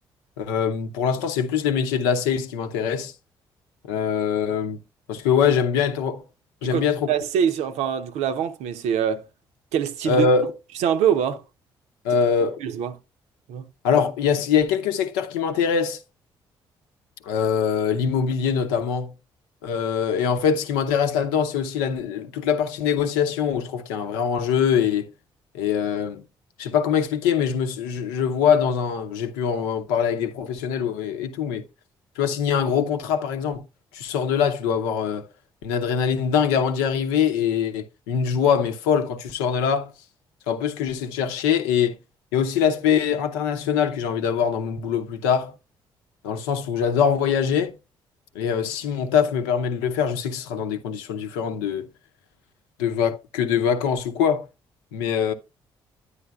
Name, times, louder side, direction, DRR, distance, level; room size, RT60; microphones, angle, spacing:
voice 1, 0.4-3.1 3.8-4.8 5.1-6.2 6.6-7.1 10.1-10.5 12.0-12.6 13.8-16.0 17.2-19.1 19.6-25.1 25.5-26.2 26.6-31.7 32.2-33.6 33.9-35.3 35.6-39.9 40.5-42.0 42.3-45.5 46.2-47.7 48.3-51.9 52.8-54.5 54.9-55.3, left 7 dB, 85° left, 0.8 m, -23 dB
voice 2, 6.6-9.3 9.7-10.3 10.8-11.4 12.6-13.0 13.5-13.7, right 8 dB, 75° right, 0.7 m, -24 dB
9.8 x 9.6 x 2.3 m
hypercardioid pair, 50°, 12 cm